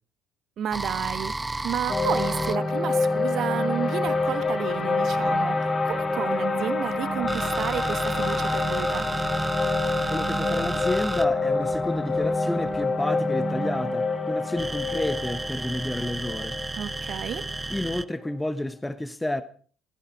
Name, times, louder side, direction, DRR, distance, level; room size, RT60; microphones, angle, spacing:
voice 1, 0.6-9.1 16.8-17.4, right 9 dB, 50° right, 1.3 m, -31 dB
sound 1, 0.7-4.1 5.3-12.7 14.6-18.0, right 2 dB, 15° right, 0.6 m, -33 dB
sound 2, 1.9-18.1, left 3 dB, 30° left, 2.4 m, -27 dB
sound 3, 6.8-12.8, right 5 dB, 90° right, 2.6 m, -50 dB
voice 2, 10.1-16.6 17.7-19.4, left 1 dB, 10° left, 1.0 m, -30 dB
17.0 x 15.5 x 4.8 m
figure-of-eight pair, 55°, 0 cm